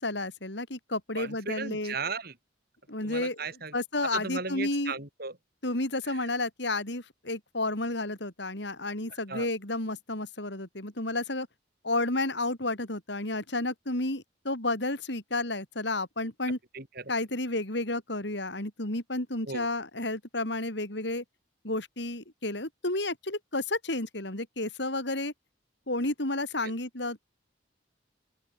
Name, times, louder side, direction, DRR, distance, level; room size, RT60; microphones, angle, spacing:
voice 1, 0.0-1.9 2.9-3.4 3.7-4.9 5.6-11.5 11.8-16.6 17.1-21.2 21.6-25.3 25.9-27.2, left 2 dB, 65° left, 4.4 m, -31 dB
voice 2, 1.1-2.4 3.0-3.7 4.1-5.4 6.0-6.3 9.1-9.5 16.7-17.1 19.5-19.7 26.6-26.7, right 4 dB, 55° right, 5.9 m, -37 dB
open air
head